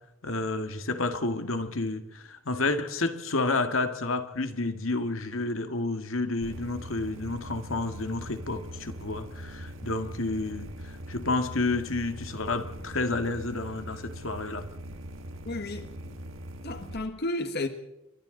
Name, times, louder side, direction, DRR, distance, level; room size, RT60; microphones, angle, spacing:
voice 1, 0.2-14.7, left 3 dB, 80° left, 1.8 m, -30 dB
sound 1, 6.4-17.0, right 1 dB, 70° right, 1.7 m, -42 dB
voice 2, 15.4-16.2 16.6-17.7, left 2 dB, 55° left, 1.4 m, -33 dB
29.5 x 23.5 x 3.9 m
head